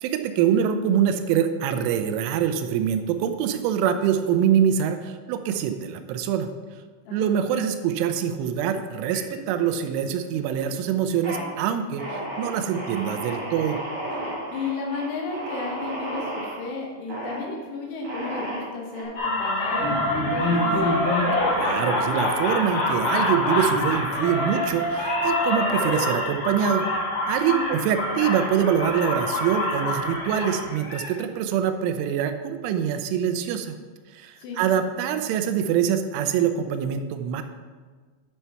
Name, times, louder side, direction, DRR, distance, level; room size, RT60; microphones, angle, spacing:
voice 1, 0.0-6.5 7.1-13.8 21.5-26.8 27.3-33.8 34.1-37.4, right 8 dB, 90° right, 8 dB, 3.1 m, -24 dB
sound 1, 9.1-9.8 10.2-10.7 11.1-11.4 12.0-16.6 17.1-17.4 18.0-19.0, right 1 dB, 40° right, 2.2 m, -33 dB
voice 2, 14.5-21.0 27.5-27.8 34.4-34.6, left 4 dB, 80° left, 0 dB, 3.8 m, -33 dB
sound 2, 19.2-31.1, left 1 dB, 50° left, 1.9 m, -25 dB
9.9 x 4.6 x 5.6 m, 1.5 s
omnidirectional pair, 5.5 m